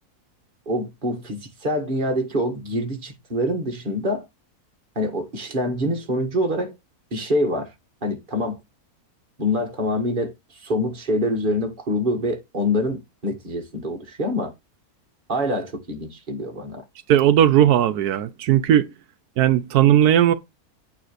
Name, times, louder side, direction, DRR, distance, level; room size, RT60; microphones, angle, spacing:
voice 1, 0.7-4.3 5.0-6.8 7.1-7.7 8.0-8.6 9.4-14.5 15.3-16.8, left 1 dB, 35° right, 1.8 m, -25 dB
voice 2, 17.1-18.9 19.4-20.3, right 11 dB, 85° right, 1.2 m, -17 dB
8.8 x 3.4 x 6.6 m
omnidirectional pair, 1.6 m